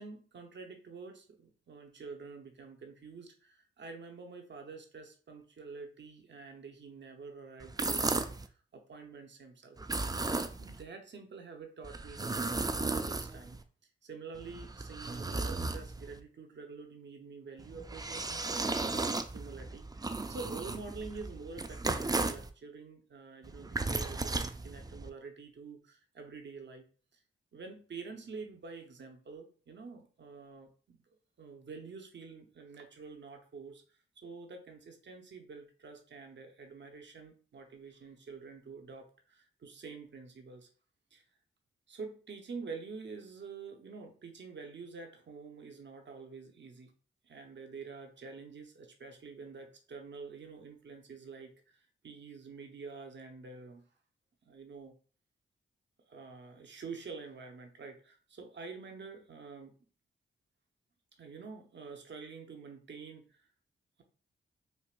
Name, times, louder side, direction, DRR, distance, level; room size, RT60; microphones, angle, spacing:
voice 1, 0.0-13.6 14.0-26.8 27.1-27.2 27.5-31.0 31.4-33.8 34.2-40.7 41.1-41.2 41.9-46.9 47.2-53.8 54.4-54.9 56.1-59.7 61.2-63.4, right 4 dB, 60° right, 4 dB, 0.8 m, -47 dB
sound 1, 7.6-8.5 9.8-10.8 11.8-13.6 14.3-16.2 17.6-22.5 23.4-25.1, right 3 dB, 20° right, 0.4 m, -35 dB
4.5 x 2.6 x 2.4 m, 0.41 s
supercardioid pair, 45°, 21 cm